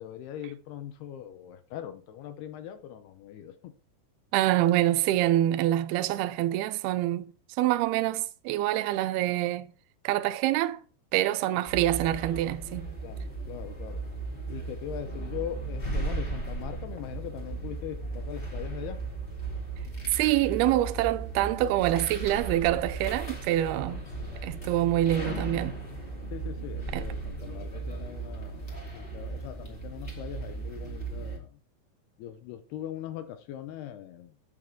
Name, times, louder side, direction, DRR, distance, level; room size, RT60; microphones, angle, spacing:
voice 1, 0.0-3.7 11.4-11.6 13.0-14.0 14.5-19.0 23.7-24.0 26.3-31.6 32.2-34.4, left 10 dB, 75° left, 2.5 m, -41 dB
voice 2, 4.3-7.3 7.6-9.7 10.0-10.8 11.1-12.9 20.1-24.0 24.4-25.8 26.9-27.1, right 14 dB, 85° right, 2.2 m, -26 dB
sound 1, 11.7-31.4, right 3 dB, 20° left, 1.5 m, -36 dB
11.5 x 7.6 x 3.8 m
omnidirectional pair, 5.3 m